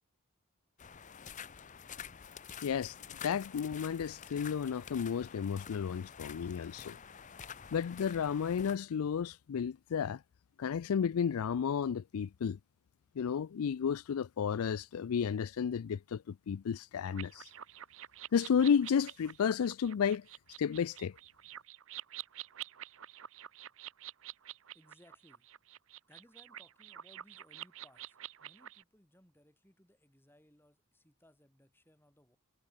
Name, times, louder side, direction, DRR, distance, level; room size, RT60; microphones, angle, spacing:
sound 1, 0.8-8.8, left 7 dB, 35° left, 0.6 m, -49 dB
voice 1, 2.6-3.0 3.2-7.0 7.7-10.2 10.6-12.6 13.2-17.5 18.3-20.2 20.6-21.2, left 7 dB, 80° left, 0.4 m, -32 dB
sound 2, 17.1-28.8, right 12 dB, 65° right, 0.7 m, -48 dB
voice 2, 24.7-25.5 26.1-32.4, left 1 dB, 10° left, 6.3 m, -64 dB
head